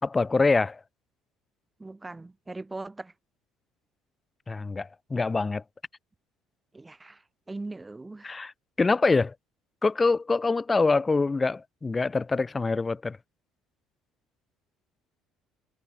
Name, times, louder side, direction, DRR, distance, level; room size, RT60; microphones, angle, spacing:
voice 1, 0.0-0.8 4.5-5.6 8.2-8.5 8.8-9.3 9.8-13.2, left 3 dB, 15° left, 2.2 m, -25 dB
voice 2, 1.8-3.1 6.7-8.4, right 2 dB, 10° right, 3.5 m, -40 dB
cardioid pair, 145°, 0 cm